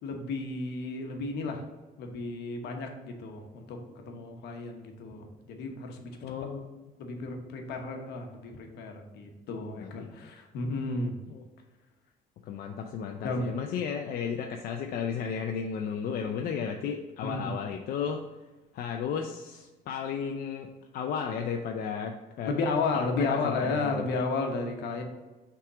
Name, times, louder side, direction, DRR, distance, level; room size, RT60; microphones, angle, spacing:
voice 1, 0.0-1.6 2.0-3.8 4.1-6.1 7.0-11.2 13.2-13.5 17.2-17.5 22.5-25.0, left 3 dB, 80° left, 4 dB, 1.1 m, -33 dB
voice 2, 6.2-6.8 9.8-10.3 11.3-11.4 12.5-18.2 18.7-22.5 22.9-24.1, left 7 dB, 60° left, 3 dB, 0.5 m, -34 dB
5.7 x 3.6 x 4.9 m, 1.2 s
cardioid pair, 110°, 17 cm